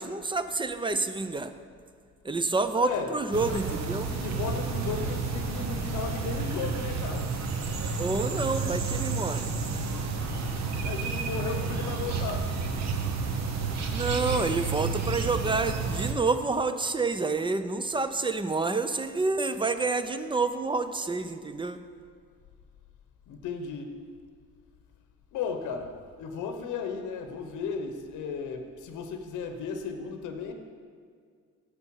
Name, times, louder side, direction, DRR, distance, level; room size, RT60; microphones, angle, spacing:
voice 1, 0.0-1.5 2.2-4.1 8.0-9.5 13.9-21.8, right 3 dB, 15° right, 11 dB, 0.4 m, -28 dB
voice 2, 2.8-3.1 3.5-3.7 4.1-7.3 10.8-12.5 23.3-23.9 25.3-25.9 26.2-30.5, left 5 dB, 85° left, 6 dB, 0.8 m, -35 dB
sound 1, 3.3-16.1, right 4 dB, 65° right, 1.0 m, -31 dB
9.5 x 6.6 x 4.6 m, 2.1 s
cardioid pair, 90°, 30 cm